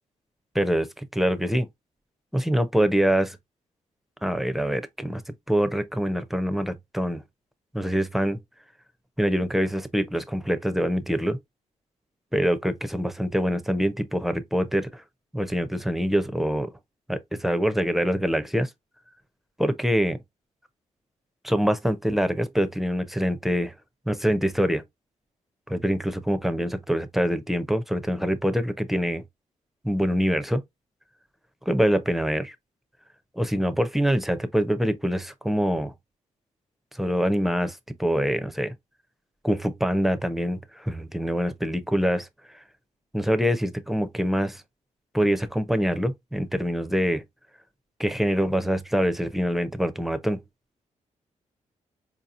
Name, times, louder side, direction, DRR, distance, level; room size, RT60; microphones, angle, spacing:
voice 1, 0.5-1.7 2.3-3.4 4.2-7.2 7.7-8.4 9.2-11.4 12.3-15.0 15.3-16.7 17.1-18.7 19.6-20.2 21.4-23.7 24.1-24.8 25.7-29.2 29.8-30.6 31.7-32.6 33.4-35.9 36.9-38.7 39.4-42.3 42.5-42.6 43.1-44.6 45.1-47.2 48.0-50.4, equal, ahead, 0.5 m, -25 dB
4.6 x 2.8 x 2.4 m
wide cardioid pair, 140°, 13 cm